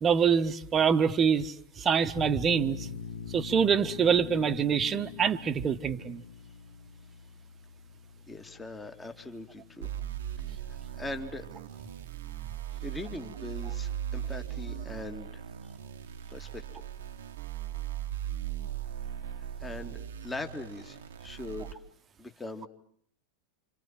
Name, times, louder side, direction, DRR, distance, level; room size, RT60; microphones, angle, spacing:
voice 1, 0.0-2.9 3.3-6.2, right 7 dB, 25° right, 12 dB, 1.4 m, -25 dB
sound 1, 2.2-13.5, left 6 dB, 55° left, 1.7 m, -45 dB
voice 2, 8.3-9.9 10.4-11.5 12.8-15.4 16.3-16.8 19.2-21.8 22.2-22.7, left 2 dB, 10° left, 7 dB, 2.5 m, -41 dB
sound 2, 9.8-21.7, right 11 dB, 60° right, 1.2 m, -38 dB
28.5 x 27.5 x 7.5 m, 0.65 s
figure-of-eight pair, 90°, 0 cm